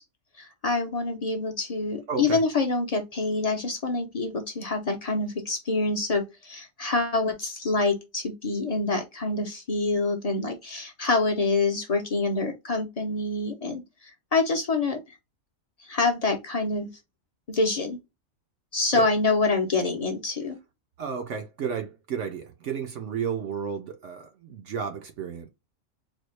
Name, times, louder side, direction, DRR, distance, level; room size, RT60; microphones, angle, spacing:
voice 1, 0.4-13.8 14.3-15.2 15.8-16.9 17.5-18.0 18.7-20.6, left 3 dB, 40° left, 0.6 m, -26 dB
voice 2, 2.1-2.4 18.9-19.1 21.0-25.5, right 6 dB, 65° right, 0.9 m, -32 dB
4.2 x 2.3 x 3.0 m
omnidirectional pair, 1.4 m